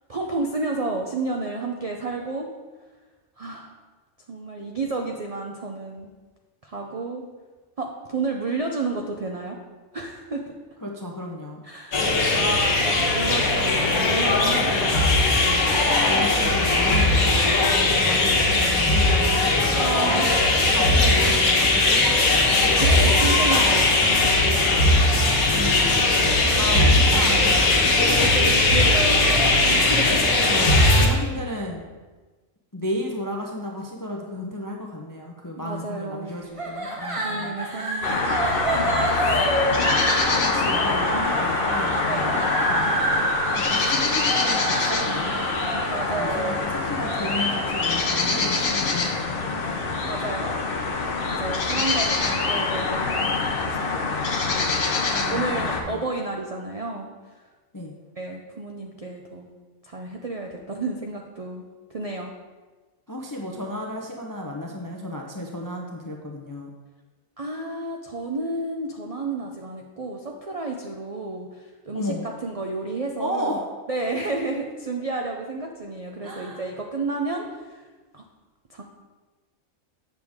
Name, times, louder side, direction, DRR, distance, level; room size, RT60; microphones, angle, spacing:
voice 1, 0.1-2.5 3.4-3.7 4.3-6.1 6.6-7.2 7.8-9.6 9.9-10.5 11.6-11.9 12.3-15.0 19.7-20.4 22.8-24.9 26.0-26.3 28.2-30.3 35.6-36.3 37.2-38.4 38.7-39.1 42.1-42.4 45.9-46.7 50.0-50.6 51.4-57.4 58.2-59.5 59.8-61.6 61.9-62.3 67.4-73.5 73.9-77.9 78.1-78.2 78.7-78.8, right 3 dB, 60° right, 1 dB, 0.3 m, -31 dB
voice 2, 10.8-11.6 16.0-20.1 20.7-22.7 25.5-26.0 26.6-28.1 30.4-31.9 32.7-37.6 39.3-39.4 40.0-42.4 42.7-43.0 43.5-45.8 46.2-46.6 46.8-49.2 55.1-56.0 57.7-57.9 63.1-66.7 71.9-72.3 73.2-73.6 76.2-76.6, left 1 dB, 30° left, 0 dB, 0.3 m, -33 dB
sound 1, 11.9-31.1, left 2 dB, 85° left, 1.6 m, -19 dB
sound 2, 36.6-49.7, right 1 dB, 25° right, 0.9 m, -28 dB
sound 3, 38.0-55.8, left 4 dB, 50° left, 0.8 m, -25 dB
7.6 x 6.4 x 3.5 m, 1.3 s
omnidirectional pair, 1.5 m